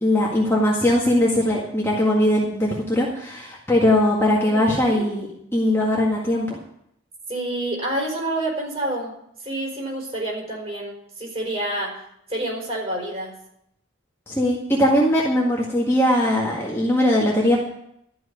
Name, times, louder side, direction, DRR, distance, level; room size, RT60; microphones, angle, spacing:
voice 1, 0.0-6.6 14.3-17.6, left 1 dB, 10° left, -4 dB, 1.8 m, -20 dB
voice 2, 4.5-5.1 7.3-9.1 9.4-11.9 12.3-13.3, right 1 dB, 30° right, -2 dB, 4.9 m, -28 dB
13.0 x 6.2 x 9.6 m, 0.76 s
head